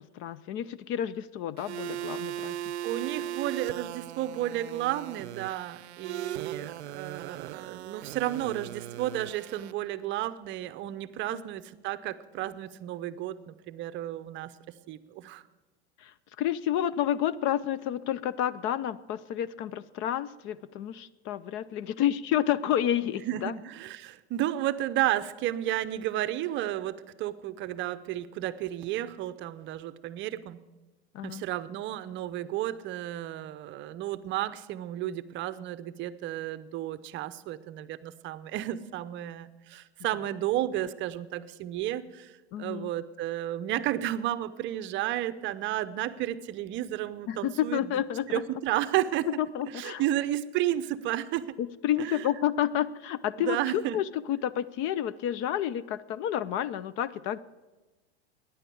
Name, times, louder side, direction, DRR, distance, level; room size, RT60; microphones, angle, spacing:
voice 1, 0.0-2.6 11.3-11.4 16.0-16.1 16.4-23.5 31.1-31.4 42.5-42.9 47.3-48.4 49.5-50.0 51.6-57.4, left 11 dB, 40° left, 18 dB, 0.5 m, -30 dB
sound 1, 1.6-9.7, right 12 dB, 90° right, 0.6 m, -38 dB
voice 2, 2.5-14.5 14.9-15.4 23.1-30.6 31.2-48.0 48.3-49.3 49.7-51.6 52.0-52.3 53.4-54.0, right 13 dB, 35° right, 14 dB, 0.7 m, -32 dB
14.0 x 10.0 x 7.0 m, 1.2 s
hypercardioid pair, 115°, 32 cm